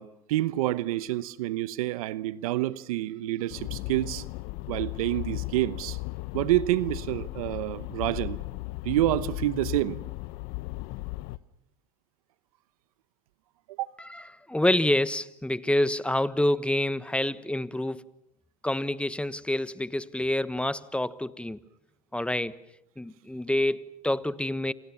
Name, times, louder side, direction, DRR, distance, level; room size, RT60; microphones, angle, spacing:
voice 1, 0.0-4.2 4.7-6.0 6.3-8.4 8.8-10.0 13.7-13.9, right 15 dB, 85° right, 1.0 m, -28 dB
sound 1, 3.5-11.4, left 21 dB, 70° left, 1.0 m, -36 dB
voice 2, 14.0-18.0 18.6-21.6 22.1-22.6 23.0-24.7, left 1 dB, 5° left, 1.3 m, -27 dB
29.5 x 27.5 x 7.1 m
hypercardioid pair, 80°, 18 cm